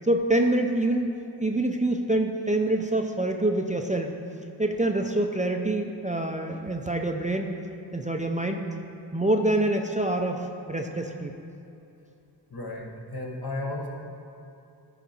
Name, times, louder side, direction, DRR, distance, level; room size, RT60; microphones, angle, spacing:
voice 1, 0.0-1.1 1.4-4.1 4.6-7.5 7.9-8.6 9.1-11.4, right 1 dB, 15° right, 3 dB, 0.5 m, -26 dB
voice 2, 12.5-13.9, left 2 dB, 55° left, -1 dB, 1.4 m, -34 dB
13.0 x 5.1 x 4.3 m, 2.7 s
wide cardioid pair, 50°, 44 cm